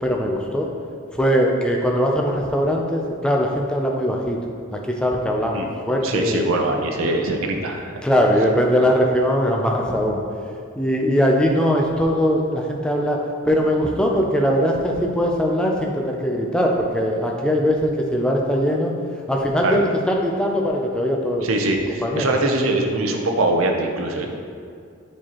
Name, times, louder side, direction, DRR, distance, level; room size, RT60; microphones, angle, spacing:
voice 1, 0.0-0.7 1.2-4.4 4.7-6.5 8.0-10.2 10.8-13.2 13.5-18.9 19.3-21.6 22.0-22.3, equal, 5° left, 0 dB, 0.4 m, -21 dB
voice 2, 6.0-7.9 19.6-19.8 21.4-24.5, right 2 dB, 80° right, 3 dB, 0.6 m, -22 dB
7.2 x 4.4 x 3.0 m, 2.2 s
head